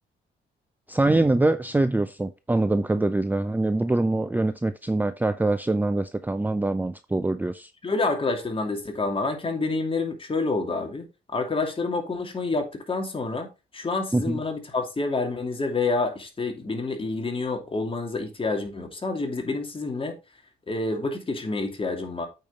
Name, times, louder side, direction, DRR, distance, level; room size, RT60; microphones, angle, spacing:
voice 1, 0.9-7.7 14.1-14.4, right 2 dB, 10° right, 0.5 m, -24 dB
voice 2, 7.8-11.1 11.3-13.5 13.7-20.1 20.7-22.3, left 3 dB, 25° left, 2.7 m, -28 dB
8.7 x 5.6 x 4.0 m
cardioid pair, 90°, 20 cm